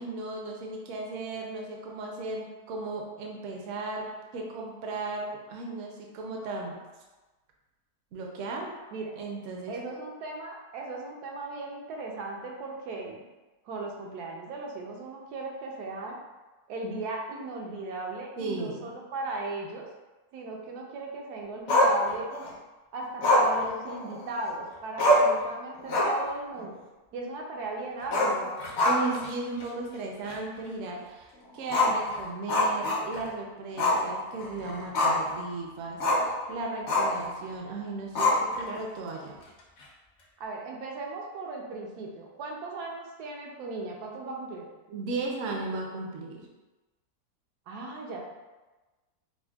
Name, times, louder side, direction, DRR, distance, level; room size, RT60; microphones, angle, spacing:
voice 1, 0.0-6.8 8.1-8.7 9.2-9.7 18.4-18.9 28.9-39.4 44.9-46.5, right 3 dB, 65° right, 0 dB, 0.8 m, -36 dB
voice 2, 9.7-13.2 13.7-16.2 16.7-19.9 20.3-22.3 22.9-26.8 27.1-28.6 40.4-44.7 47.7-48.2, right 2 dB, 85° right, 0 dB, 1.1 m, -37 dB
Growling, 21.7-22.5 23.2-24.5 24.7-24.8 25.0-25.4 25.8-26.3 26.6-26.7 28.0-29.3 29.6-29.7 30.3-30.4 31.7-33.3 33.8-34.1 34.4-35.3 36.0-36.3 36.9-37.2 38.2-38.8, left 1 dB, 60° left, 0.8 m, -24 dB
5.1 x 2.1 x 2.3 m, 1.2 s
omnidirectional pair, 1.7 m